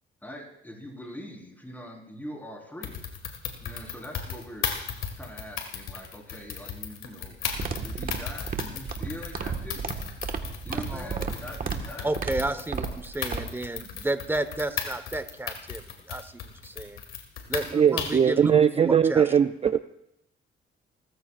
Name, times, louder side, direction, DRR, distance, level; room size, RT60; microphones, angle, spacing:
voice 1, 0.2-3.0 3.6-9.9 10.6-12.2 12.5-12.6 13.3-13.5, equal, 10° left, 0 dB, 4.3 m, -43 dB
sound 1, 2.8-18.3, left 7 dB, 85° left, 1.9 m, -36 dB
sound 2, 7.4-13.4, right 5 dB, 45° right, 1.5 m, -33 dB
voice 2, 10.7-11.3 12.0-17.0 17.5-18.5 18.8-19.2, right 2 dB, 10° right, 11 dB, 1.1 m, -32 dB
voice 3, 17.7-19.8, right 8 dB, 30° right, 11 dB, 0.4 m, -20 dB
28.5 x 14.5 x 2.5 m, 0.77 s
cardioid pair, 90°, 20 cm